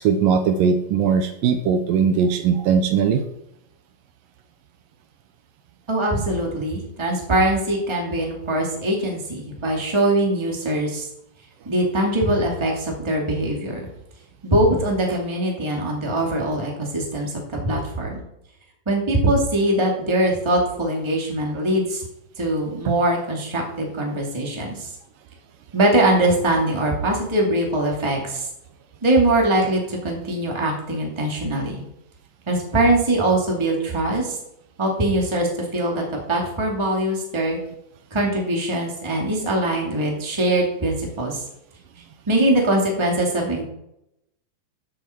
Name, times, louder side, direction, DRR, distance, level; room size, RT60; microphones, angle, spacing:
voice 1, 0.0-3.2 22.9-23.0, right 6 dB, 80° right, 8 dB, 2.4 m, -19 dB
voice 2, 5.9-11.1 11.7-13.9 14.4-18.2 18.9-22.0 22.4-24.9 25.7-28.5 29.0-31.8 32.5-34.4 34.8-37.6 38.1-41.4 42.3-43.6, right 1 dB, 10° right, 0 dB, 1.8 m, -22 dB
14.0 x 6.8 x 4.5 m, 0.82 s
omnidirectional pair, 4.1 m